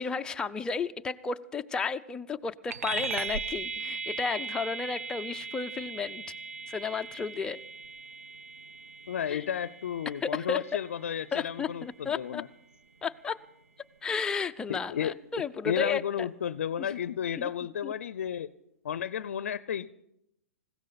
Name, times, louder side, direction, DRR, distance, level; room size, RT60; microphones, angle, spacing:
voice 1, 0.0-6.2 6.7-7.6 9.3-9.4 10.2-10.6 11.3-12.4 13.0-13.4 14.0-16.3 16.8-16.9 17.4-17.5 17.8-17.9, left 5 dB, 10° left, 7 dB, 0.5 m, -33 dB
sound 1, 2.7-12.5, right 5 dB, 85° right, 0.8 m, -39 dB
voice 2, 9.1-12.5 14.7-15.2 15.6-18.5 18.8-20.0, left 9 dB, 80° left, 17 dB, 0.5 m, -33 dB
20.0 x 16.0 x 4.1 m, 0.80 s
hypercardioid pair, 135°, 7 cm